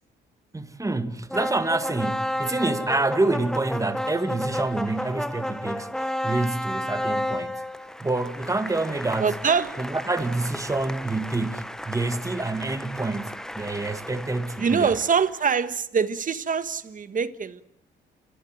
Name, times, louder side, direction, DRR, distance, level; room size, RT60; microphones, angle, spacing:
voice 1, 0.5-7.6 8.0-9.4 9.8-15.0, right 2 dB, 15° right, 1.8 m, -27 dB
sound 1, 1.3-15.5, left 1 dB, 5° left, 1.0 m, -33 dB
voice 2, 9.2-9.7 14.6-17.6, right 6 dB, 40° right, 1.5 m, -24 dB
29.5 x 15.5 x 9.4 m
cardioid pair, 90°, 20 cm